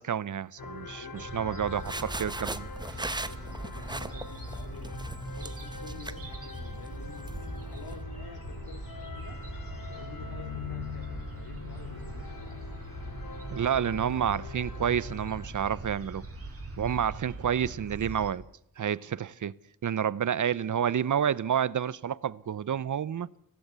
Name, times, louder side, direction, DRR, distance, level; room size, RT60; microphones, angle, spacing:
voice 1, 0.0-3.3 13.5-16.2 16.8-18.4 18.8-19.5 19.8-23.3, right 8 dB, 55° right, 0.8 m, -29 dB
sound 1, 0.6-15.5, left 4 dB, 70° left, 3.3 m, -43 dB
voice 2, 0.8-1.8 3.3-7.3 7.7-9.4 9.9-12.6 13.9-14.0, left 5 dB, 85° left, 2.9 m, -50 dB
sound 2, 1.2-18.3, right 2 dB, 40° right, 5.2 m, -42 dB
sound 3, 1.7-8.0, right 2 dB, 10° right, 0.9 m, -40 dB
25.0 x 17.5 x 8.2 m
wide cardioid pair, 130°, 36 cm